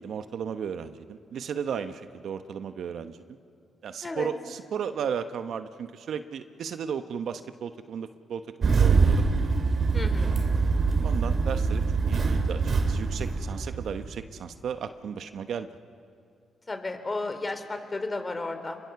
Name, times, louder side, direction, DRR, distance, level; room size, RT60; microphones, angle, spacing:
voice 1, 0.0-3.4 3.8-9.3 11.0-12.6 12.9-15.7, right 7 dB, 70° right, 10 dB, 1.0 m, -34 dB
Engine starting, 8.6-14.2, right 4 dB, 50° right, 2.7 m, -24 dB
voice 2, 9.9-10.4 16.7-18.8, left 2 dB, 30° left, 8 dB, 3.8 m, -33 dB
29.0 x 22.5 x 7.0 m, 2.4 s
supercardioid pair, 50°, 0 cm